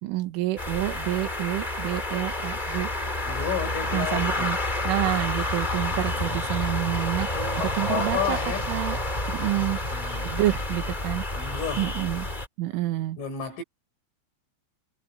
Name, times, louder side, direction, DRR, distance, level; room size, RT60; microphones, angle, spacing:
voice 1, 0.0-2.9 3.9-4.6 4.9-7.3 7.6-8.4 8.7-9.0 9.3-9.8 10.3-11.2 11.8-12.3 12.6-13.2, right 15 dB, 80° right, 4.1 m, -28 dB
sound 1, 0.6-12.5, left 1 dB, 15° left, 2.1 m, -29 dB
voice 2, 3.2-4.6 5.8-6.5 7.2-8.7 9.9-10.4 11.3-11.9 13.2-13.6, left 7 dB, 75° left, 8.0 m, -32 dB
omnidirectional pair, 5.7 m